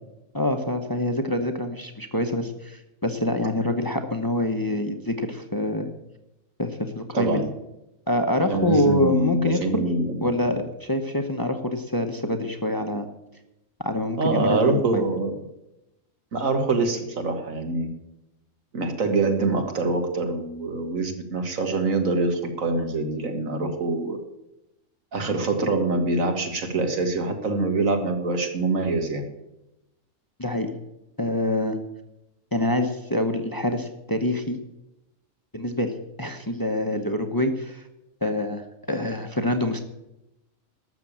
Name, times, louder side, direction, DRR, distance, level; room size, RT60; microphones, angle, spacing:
voice 1, 0.3-5.9 6.6-7.4 8.1-9.8 10.2-13.1 13.8-15.0 30.4-30.7 31.2-31.8 32.5-34.6 35.5-35.9 36.2-37.8 38.2-39.8, left 1 dB, 20° left, 6 dB, 0.8 m, -26 dB
voice 2, 7.1-7.5 8.5-10.3 14.2-15.3 16.3-17.9 18.7-24.2 25.1-29.2, right 3 dB, 85° right, 5 dB, 2.1 m, -24 dB
12.5 x 6.9 x 8.7 m, 0.91 s
omnidirectional pair, 1.4 m